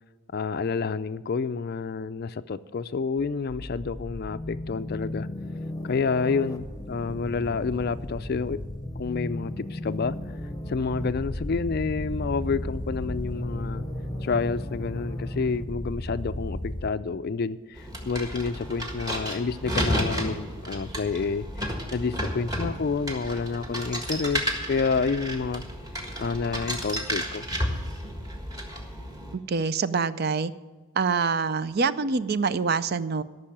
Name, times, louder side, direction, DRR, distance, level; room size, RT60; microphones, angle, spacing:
voice 1, 0.3-5.3 5.8-8.6 9.0-10.2 10.7-13.8 14.2-25.6 26.2-27.5, left 4 dB, 45° left, 13 dB, 0.4 m, -29 dB
sound 1, 3.2-16.9, left 1 dB, 15° left, 0.8 m, -35 dB
sound 2, 17.8-29.3, equal, 15° right, 1.6 m, -32 dB
voice 2, 29.3-30.5 31.0-33.2, right 5 dB, 45° right, 15 dB, 0.4 m, -25 dB
13.0 x 6.2 x 8.9 m, 1.4 s
head